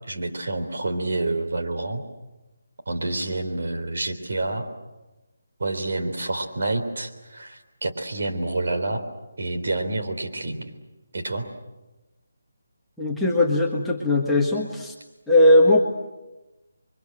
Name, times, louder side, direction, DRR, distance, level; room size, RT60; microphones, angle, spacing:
voice 1, 0.1-2.0 2.9-4.7 5.6-9.1 9.4-10.6 11.1-11.5, right 2 dB, 60° right, 6 dB, 3.6 m, -28 dB
voice 2, 13.0-14.9 15.3-15.8, left 1 dB, ahead, -5 dB, 1.5 m, -19 dB
30.0 x 24.0 x 7.8 m, 1.1 s
hypercardioid pair, 175°, 0 cm